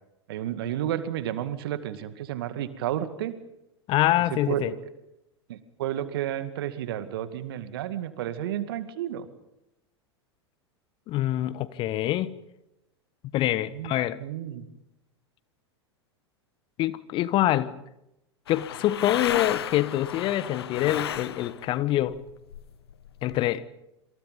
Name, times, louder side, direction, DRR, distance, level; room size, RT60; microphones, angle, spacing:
voice 1, 0.3-3.4 4.3-4.8 5.5-9.3 13.7-13.9 14.2-14.7, right 11 dB, 55° right, 2.2 m, -31 dB
voice 2, 3.9-4.7 11.1-12.3 13.3-14.2 16.8-17.7 18.5-22.2 23.2-23.7, left 14 dB, 35° left, 1.3 m, -25 dB
sound 1, 18.5-21.8 22.1-23.4, left 10 dB, 65° left, 1.3 m, -33 dB
27.5 x 27.0 x 5.5 m
figure-of-eight pair, 90°, 14 cm